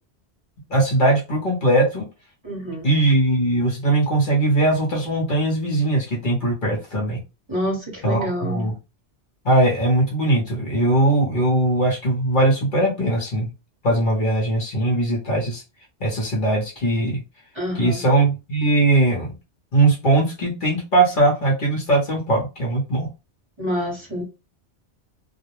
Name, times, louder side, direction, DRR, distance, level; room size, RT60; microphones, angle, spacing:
voice 1, 0.7-2.0 2.8-7.2 8.0-8.7 9.4-13.5 13.8-15.6 16.0-17.2 17.7-19.3 19.7-23.1, right 2 dB, 50° left, 0.9 m, -20 dB
voice 2, 2.4-2.9 7.5-8.7 17.5-18.0 23.6-24.2, equal, 25° right, 1.0 m, -27 dB
2.4 x 2.0 x 3.0 m
omnidirectional pair, 1.1 m